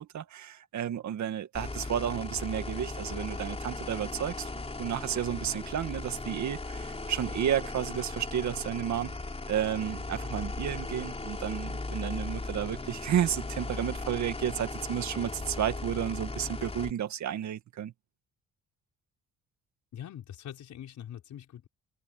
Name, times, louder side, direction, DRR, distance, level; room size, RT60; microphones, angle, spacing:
voice 1, 0.0-4.5 4.8-9.2 9.5-17.9, right 10 dB, 70° right, 2.2 m, -32 dB
sound 1, 1.5-16.9, left 3 dB, 20° left, 4.5 m, -37 dB
voice 2, 19.9-21.7, left 10 dB, 70° left, 6.1 m, -43 dB
open air
cardioid pair, 90°, 30 cm